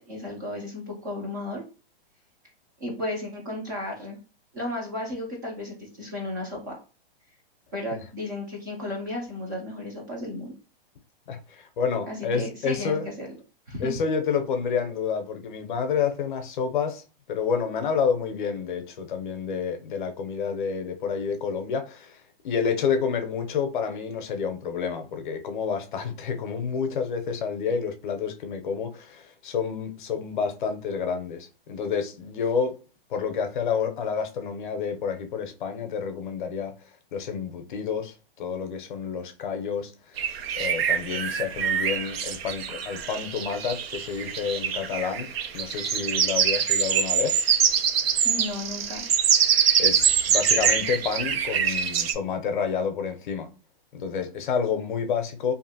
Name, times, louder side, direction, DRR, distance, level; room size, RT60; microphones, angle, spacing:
voice 1, 0.1-1.6 2.8-4.2 4.5-6.8 7.7-10.5 12.1-13.3 13.7-13.9 48.2-49.0, left 1 dB, 20° right, 0.4 m, -34 dB
voice 2, 11.3-13.1 13.8-32.8 33.1-36.8 37.1-40.2 40.6-47.4 49.8-53.5 53.9-55.5, left 6 dB, 55° left, 0.6 m, -29 dB
sound 1, 40.2-52.1, right 8 dB, 80° right, 0.5 m, -24 dB
2.7 x 2.5 x 2.7 m
hypercardioid pair, 170°, 30 cm